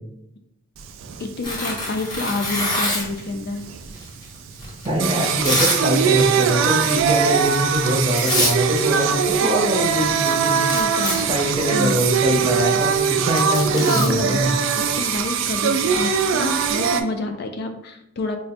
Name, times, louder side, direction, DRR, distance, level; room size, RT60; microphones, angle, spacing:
Singing, 0.8-17.0, right 7 dB, 70° right, 0.3 m, -22 dB
voice 1, 1.2-3.6 10.7-11.3 11.7-12.1 12.7-12.8 13.9-14.4 14.7-18.4, left 2 dB, 50° left, 6 dB, 0.3 m, -28 dB
Tearing, 1.4-3.2 4.0-5.8 6.1-6.5 6.9-7.1 7.8-7.9 8.2-8.6 8.9-9.4 9.6-9.7 10.0-15.1, left 1 dB, 20° left, 0.7 m, -27 dB
voice 2, 4.8-10.6 11.3-14.5, equal, 25° right, 0 dB, 0.6 m, -23 dB
4.1 x 2.0 x 2.7 m, 0.81 s
head